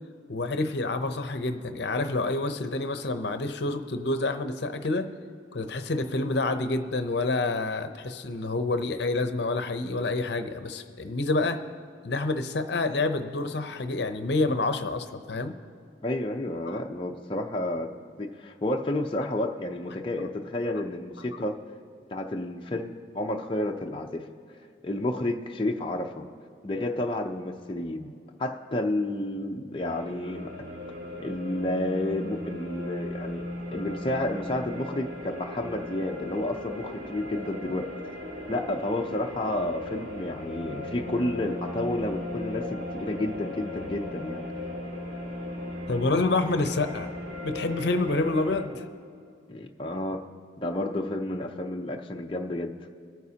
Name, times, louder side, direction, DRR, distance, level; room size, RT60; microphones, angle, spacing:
voice 1, 0.3-5.1 5.5-11.6 12.0-15.6 16.7-16.8 45.9-47.1 47.4-48.9, left 2 dB, 65° left, 8 dB, 0.7 m, -28 dB
voice 2, 16.0-17.9 18.2-21.6 22.1-24.2 24.8-26.2 26.6-28.1 28.4-30.5 31.2-37.9 38.5-44.4 49.5-50.3 50.6-52.7, left 1 dB, 25° left, 1 dB, 0.6 m, -31 dB
sound 1, 29.8-48.7, left 1 dB, 80° right, 2.4 m, -37 dB
24.5 x 9.3 x 2.8 m, 2.4 s
head